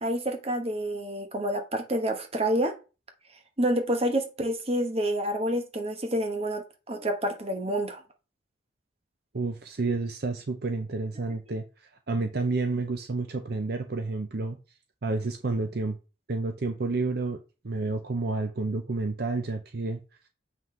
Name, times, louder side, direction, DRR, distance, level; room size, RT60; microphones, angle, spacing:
voice 1, 0.0-2.7 3.6-8.0, right 1 dB, 35° right, 1.1 m, -28 dB
voice 2, 9.3-11.6 12.1-14.6 15.0-16.0 16.3-17.4 17.6-20.0, right 3 dB, 55° right, 0.6 m, -30 dB
7.3 x 5.8 x 3.2 m
head